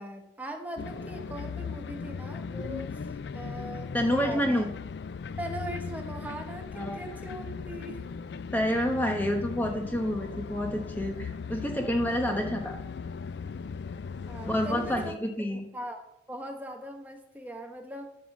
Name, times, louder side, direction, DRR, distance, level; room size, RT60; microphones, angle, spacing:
voice 1, 0.0-4.6 5.4-8.0 14.3-15.2 15.5-18.2, right 1 dB, 10° right, 3 dB, 1.2 m, -40 dB
sound 1, 0.8-15.2, left 5 dB, 65° left, 0.4 m, -38 dB
voice 2, 3.9-4.7 6.7-7.0 8.5-12.8 14.5-15.6, equal, 10° left, 2 dB, 1.1 m, -28 dB
12.0 x 6.0 x 7.2 m, 0.78 s
head